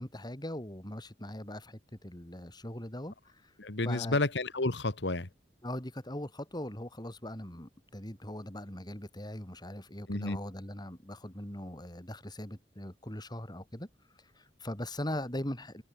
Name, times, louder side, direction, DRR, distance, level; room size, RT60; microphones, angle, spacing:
voice 1, 0.0-3.5 3.8-4.2 5.6-13.9 14.4-15.8, left 1 dB, 25° left, 4.0 m, -40 dB
voice 2, 3.6-5.3 10.1-10.4, left 2 dB, 70° left, 1.8 m, -30 dB
head